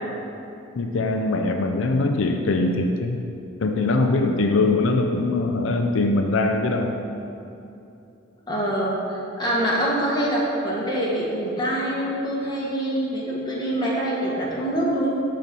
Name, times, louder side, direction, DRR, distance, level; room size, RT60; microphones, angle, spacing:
voice 1, 0.8-3.2 3.6-7.0, left 2 dB, 80° left, 4 dB, 0.5 m, -22 dB
voice 2, 8.5-15.1, right 1 dB, 20° left, -5 dB, 1.7 m, -25 dB
13.0 x 4.4 x 5.4 m, 2.8 s
head